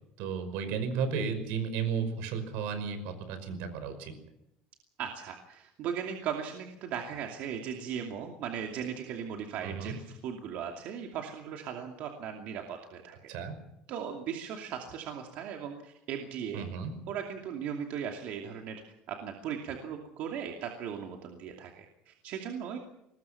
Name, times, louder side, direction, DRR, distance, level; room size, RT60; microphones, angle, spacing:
voice 1, 0.2-4.1 9.6-10.0 13.3-13.5 16.5-16.9, right 6 dB, 80° right, 9 dB, 5.5 m, -33 dB
voice 2, 5.0-13.2 13.9-16.7 17.1-18.8 19.1-22.8, right 8 dB, 55° right, 2 dB, 2.6 m, -38 dB
23.0 x 20.0 x 5.9 m, 0.84 s
cardioid pair, 155°, 3 cm